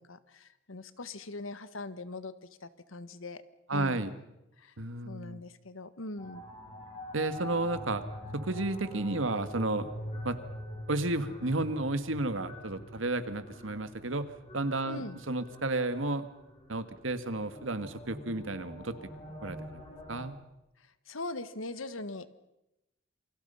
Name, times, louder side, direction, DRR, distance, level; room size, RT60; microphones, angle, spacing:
voice 1, 0.0-2.3 2.6-3.4 3.7-4.0 4.6-4.7 5.0-6.4 14.8-15.2 20.8-22.3, left 2 dB, 85° left, 13 dB, 1.5 m, -41 dB
voice 2, 3.7-4.1 4.8-5.4 7.1-8.0 8.3-9.9 10.2-10.4 10.9-14.3 14.5-16.3 16.7-19.0 19.4-19.6 20.1-20.4, right 2 dB, 75° right, 11 dB, 1.7 m, -32 dB
sound 1, 6.2-20.2, equal, 30° left, 6.6 m, -45 dB
28.0 x 24.5 x 5.7 m, 0.91 s
head